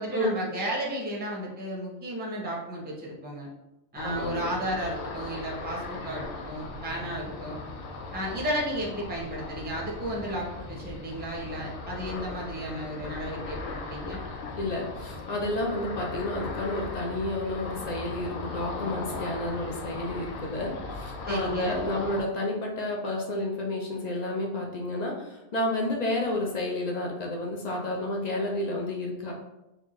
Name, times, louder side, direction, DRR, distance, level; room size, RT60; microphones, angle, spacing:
voice 1, 0.0-3.5 3.9-7.6 8.1-14.2 21.3-21.8, right 1 dB, 10° right, -3 dB, 0.6 m, -33 dB
Ocean, 4.0-22.2, left 3 dB, 85° left, 1.0 m, -38 dB
voice 2, 4.0-4.5 14.6-29.3, left 1 dB, 45° left, -1 dB, 0.6 m, -30 dB
4.2 x 2.6 x 3.1 m, 0.93 s
omnidirectional pair, 1.4 m